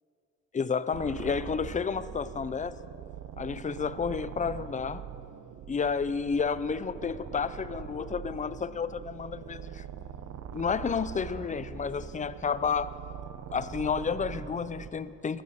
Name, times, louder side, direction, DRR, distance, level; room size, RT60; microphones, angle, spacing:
voice 1, 0.5-2.7 3.4-5.0 5.7-9.8 10.5-12.9 13.5-15.4, left 6 dB, 25° left, 0.5 m, -31 dB
sound 1, 0.9-14.9, right 9 dB, 60° right, 0.7 m, -42 dB
18.5 x 12.5 x 4.3 m
cardioid pair, 90°, 30 cm